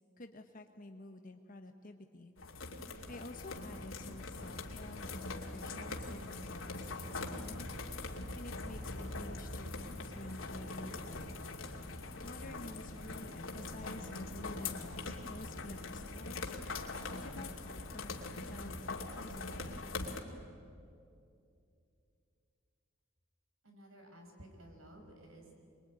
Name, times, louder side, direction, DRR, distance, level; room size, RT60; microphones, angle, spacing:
voice 1, 0.2-7.7 8.0-11.4 11.8-16.6 17.2-19.9, left 2 dB, 45° left, 5 dB, 1.1 m, -51 dB
sound 1, 2.4-20.2, left 3 dB, 85° left, 2.5 m, -42 dB
voice 2, 23.6-25.6, right 1 dB, 90° right, 3 dB, 5.3 m, -55 dB
25.0 x 22.0 x 9.6 m, 2.5 s
head